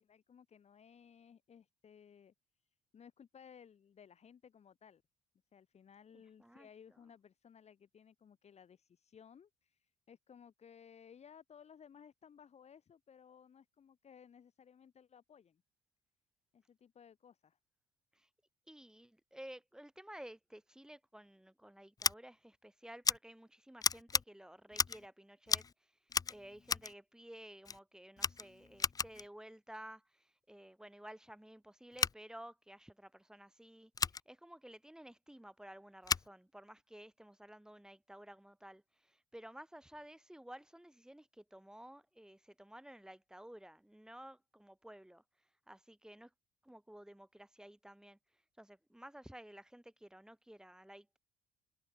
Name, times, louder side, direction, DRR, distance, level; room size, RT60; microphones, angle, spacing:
voice 1, 0.0-2.3 2.9-5.0 5.5-9.8 10.1-15.6 16.5-17.6, left 7 dB, 40° left, 2.1 m, -59 dB
voice 2, 6.1-7.0 18.1-18.3 18.7-25.9 26.3-45.2 45.7-46.3 46.6-48.2 48.6-51.2, right 1 dB, 5° right, 7.8 m, -54 dB
Scissors, 22.0-22.1 23.0-23.2 23.8-24.2 24.7-25.1 25.5-25.7 26.1-26.9 27.7-27.8 28.2-29.3 31.9-32.1 33.9-34.2 36.0-36.3, left 5 dB, 20° left, 0.5 m, -34 dB
cardioid pair, 110°, 17 cm